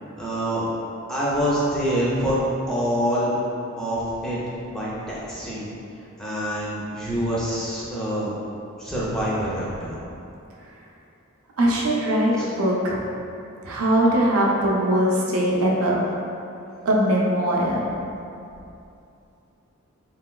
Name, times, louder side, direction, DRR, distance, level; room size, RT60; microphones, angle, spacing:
voice 1, 0.2-0.7 1.1-2.4 2.7-3.3 3.8-4.4 4.7-5.7 6.2-8.4 8.8-10.0 12.4-12.5, equal, 5° left, -8 dB, 0.5 m, -26 dB
voice 2, 11.6-13.0 13.6-16.0 16.9-17.9, right 1 dB, 80° right, -3 dB, 0.5 m, -21 dB
3.1 x 2.9 x 2.2 m, 2.7 s
head